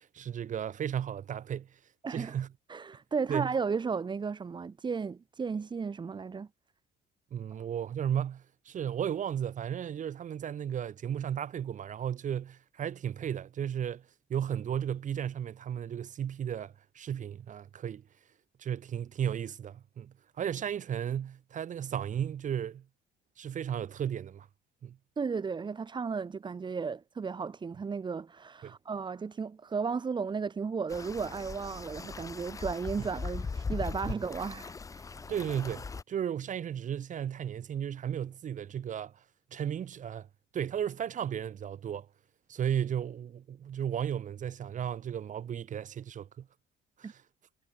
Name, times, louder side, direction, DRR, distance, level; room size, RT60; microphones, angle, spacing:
voice 1, 0.0-1.8 2.1-2.5 3.3-3.5 7.3-18.1 18.6-22.8 23.4-24.5 24.8-25.0 28.6-28.8 33.0-33.1 34.1-34.2 35.3-39.2 39.5-40.3 40.5-42.1 42.5-46.5 47.0-47.2, right 9 dB, 50° right, 2.6 m, -34 dB
voice 2, 2.0-2.4 2.7-6.5 25.2-35.2 47.0-47.1, right 5 dB, 25° right, 1.5 m, -34 dB
sound 1, 30.9-36.0, left 4 dB, 20° left, 0.6 m, -39 dB
cardioid pair, 110°, 17 cm